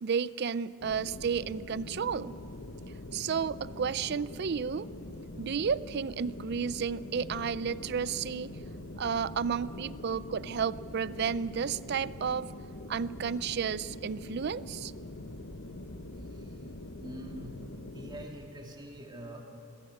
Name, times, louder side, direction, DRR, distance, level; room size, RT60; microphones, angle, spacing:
voice 1, 0.0-2.3 3.1-4.9 5.4-8.6 9.0-12.5 12.9-14.9, right 6 dB, 50° right, 18 dB, 0.4 m, -32 dB
sound 1, 0.8-18.3, left 2 dB, 70° left, 1.1 m, -44 dB
sound 2, 7.2-13.9, right 1 dB, 55° left, 1.5 m, -57 dB
voice 2, 16.2-16.7 17.0-17.6 17.9-19.4, right 1 dB, 20° right, 1 dB, 2.3 m, -45 dB
21.0 x 16.0 x 8.6 m, 2.7 s
head